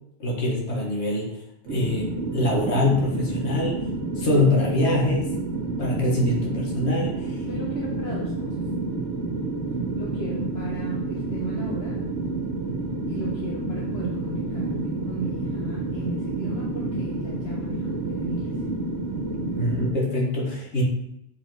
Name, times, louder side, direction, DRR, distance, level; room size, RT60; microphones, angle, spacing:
voice 1, 0.2-1.4 1.7-3.9 4.2-5.4 5.8-7.4 19.6-20.8, left 1 dB, 85° left, -2 dB, 1.8 m, -24 dB
sound 1, 1.7-19.9, right 3 dB, 80° right, 1.3 m, -29 dB
voice 2, 7.4-8.6 10.0-12.0 13.1-18.6, equal, 70° left, -4 dB, 1.3 m, -36 dB
7.3 x 4.3 x 4.0 m, 0.79 s
omnidirectional pair, 1.1 m